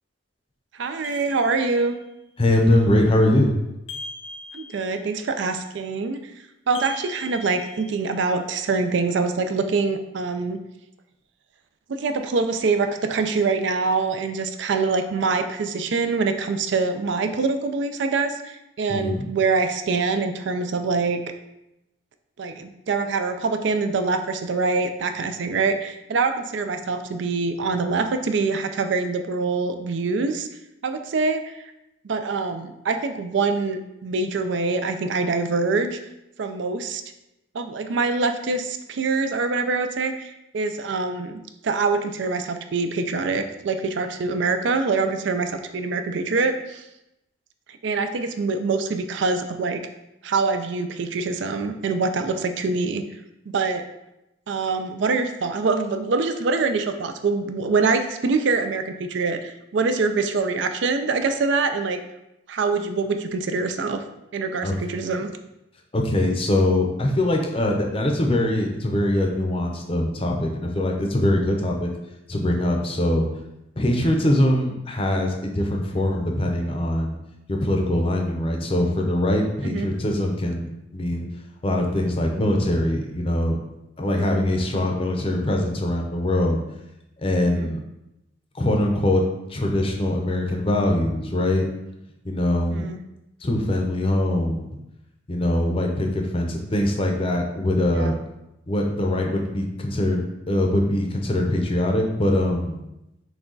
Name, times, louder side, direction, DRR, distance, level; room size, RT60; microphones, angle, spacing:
voice 1, 0.7-2.0 4.5-6.2 6.7-10.6 11.9-21.2 22.4-30.5 30.8-31.6 32.0-36.0 36.4-37.0 37.5-46.9 47.8-49.8 50.2-53.0 53.5-53.8 54.5-62.0 62.5-64.0 64.3-65.3 79.6-79.9 84.1-84.4 87.4-87.7 92.7-93.0 97.9-98.1, right 4 dB, 65° right, 7 dB, 0.4 m, -24 dB
sound 1, 1.0-2.0 3.9-5.2 6.7-8.3, left 2 dB, 80° left, 0.9 m, -40 dB
voice 2, 2.4-3.5 18.9-19.2 64.6-64.7 65.9-71.9 72.3-73.3 73.8-77.1 77.5-81.3 81.6-83.6 84.0-86.6 87.2-87.8 88.5-89.2 89.5-91.7 92.2-92.9 93.4-94.8 95.3-98.2 98.7-102.8, left 1 dB, 30° left, 1 dB, 0.6 m, -22 dB
6.1 x 2.3 x 3.8 m, 0.90 s
head